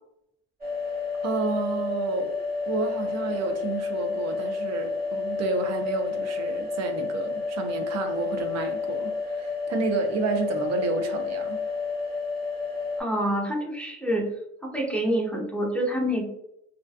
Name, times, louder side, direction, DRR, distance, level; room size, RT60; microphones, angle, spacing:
sound 1, 0.6-13.0, left 4 dB, 30° right, 0.9 m, -30 dB
voice 1, 1.2-2.3 2.7-11.6, right 3 dB, 60° right, 5 dB, 0.5 m, -30 dB
voice 2, 13.0-14.3 14.6-16.3, equal, 5° left, -2 dB, 0.5 m, -27 dB
2.4 x 2.2 x 2.5 m, 0.80 s
cardioid pair, 90°, 30 cm